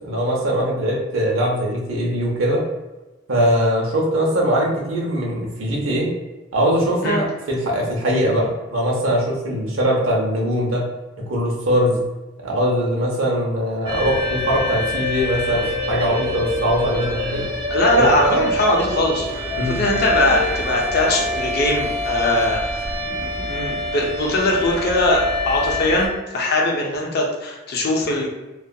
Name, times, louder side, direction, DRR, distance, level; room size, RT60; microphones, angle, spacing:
voice 1, 0.0-2.6 3.3-6.1 6.5-10.8 11.2-12.0 12.4-17.4 17.9-18.1 19.6-19.8, equal, 85° right, -2 dB, 0.7 m, -21 dB
sound 1, 13.9-26.1, left 1 dB, 20° right, 0.5 m, -25 dB
voice 2, 17.7-28.3, left 1 dB, 50° left, 0 dB, 0.5 m, -21 dB
2.7 x 2.3 x 2.2 m, 1.1 s
head